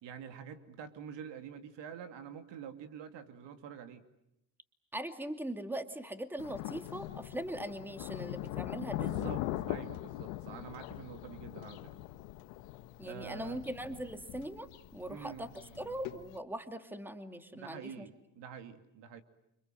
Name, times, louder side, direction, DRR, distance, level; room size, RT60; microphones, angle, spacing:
voice 1, 0.0-4.0 9.0-11.9 13.0-13.6 15.1-16.0 17.5-19.2, right 8 dB, 60° right, 8 dB, 2.7 m, -47 dB
voice 2, 4.9-9.3 13.0-15.5 15.8-18.1, right 1 dB, 5° right, 7 dB, 2.4 m, -41 dB
Thunder, 6.4-16.4, left 15 dB, 90° left, 1.5 m, -41 dB
29.0 x 26.0 x 7.7 m, 0.83 s
supercardioid pair, 90°, 48 cm